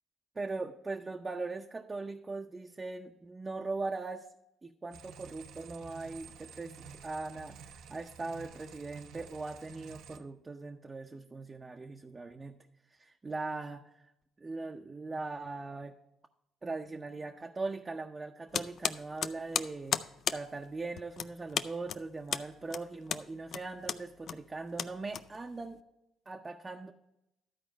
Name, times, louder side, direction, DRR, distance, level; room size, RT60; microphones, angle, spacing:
voice 1, 0.4-4.3 4.6-12.6 13.0-13.8 14.4-16.0 16.6-20.0 20.3-25.8 26.3-26.9, right 3 dB, 25° right, 3 dB, 0.6 m, -40 dB
sound 1, 4.9-10.2, right 6 dB, 75° right, 0.7 m, -51 dB
sound 2, 18.5-25.7, left 8 dB, 60° left, 0.4 m, -36 dB
12.5 x 4.3 x 6.1 m, 0.85 s
supercardioid pair, 80°, 0 cm